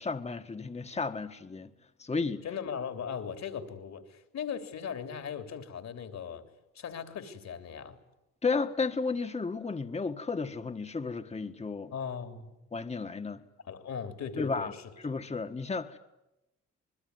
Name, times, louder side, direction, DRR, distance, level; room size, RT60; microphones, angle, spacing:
voice 1, 0.0-1.7 2.0-2.4 8.4-11.9 12.7-13.4 14.4-14.7 15.0-16.0, left 4 dB, 20° left, 1.6 m, -33 dB
voice 2, 2.4-6.5 6.7-8.0 11.9-12.5 13.6-14.9, left 7 dB, 60° left, 3.3 m, -38 dB
26.5 x 21.5 x 9.6 m
cardioid pair, 90°, 30 cm